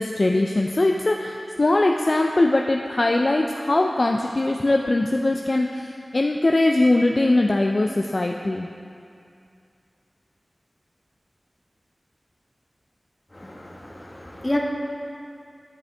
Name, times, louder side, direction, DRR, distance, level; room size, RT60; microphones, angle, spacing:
voice 1, 0.0-8.7, left 2 dB, 50° left, 2 dB, 0.4 m, -21 dB
voice 2, 13.3-14.6, left 1 dB, 30° left, -1 dB, 1.2 m, -30 dB
12.5 x 5.6 x 3.4 m, 2.5 s
cardioid pair, 40°, 0 cm